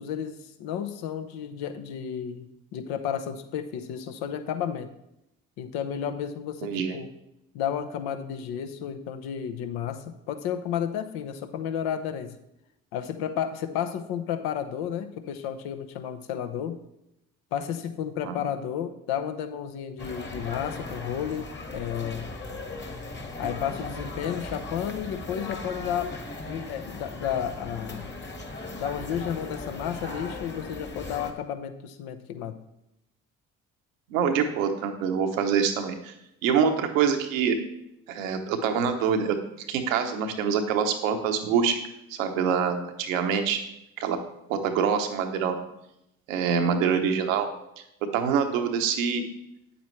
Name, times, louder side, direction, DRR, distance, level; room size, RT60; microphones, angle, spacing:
voice 1, 0.0-4.9 5.6-7.1 7.5-12.4 12.9-16.8 17.5-22.4 23.4-26.1 26.5-28.1 28.7-32.6, left 9 dB, 75° left, 8 dB, 0.9 m, -32 dB
voice 2, 6.6-7.0 18.2-18.4 34.1-36.1 36.4-37.6 38.1-41.8 42.1-43.6 44.0-44.2 44.5-45.6 46.3-47.5 48.1-49.2, right 7 dB, 85° right, 6 dB, 0.9 m, -25 dB
sound 1, 20.0-31.3, left 2 dB, 30° left, 1.5 m, -38 dB
8.8 x 8.0 x 3.2 m, 0.83 s
hypercardioid pair, 50°, 39 cm